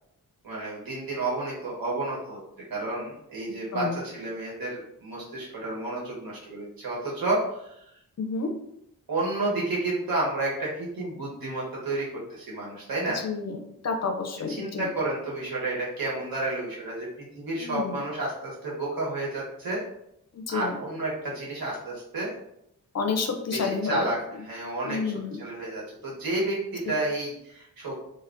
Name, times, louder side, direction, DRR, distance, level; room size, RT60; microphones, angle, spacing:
voice 1, 0.4-8.0 9.1-13.2 14.5-19.8 20.5-22.3 23.5-24.2 24.4-25.1 25.4-27.9, right 2 dB, 80° right, -5 dB, 1.2 m, -31 dB
voice 2, 8.2-8.5 13.1-14.9 17.6-18.0 20.3-20.8 22.9-24.1 24.8-25.4, left 4 dB, 50° left, 5 dB, 0.5 m, -30 dB
3.3 x 2.2 x 2.5 m, 0.77 s
cardioid pair, 65°, 35 cm